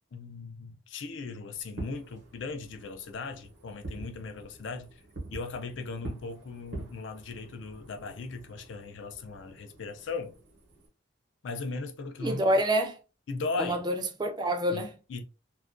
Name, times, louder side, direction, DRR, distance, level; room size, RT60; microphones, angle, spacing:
voice 1, 0.1-5.0 5.3-10.3 11.4-12.5 13.3-13.8 14.7-14.8 15.1-15.2, left 4 dB, 85° left, 0.4 m, -38 dB
Fireworks, 1.6-10.9, right 2 dB, 80° right, 0.7 m, -45 dB
voice 2, 12.2-13.0 13.6-14.9, right 1 dB, 25° right, 0.3 m, -27 dB
2.3 x 2.1 x 2.4 m
head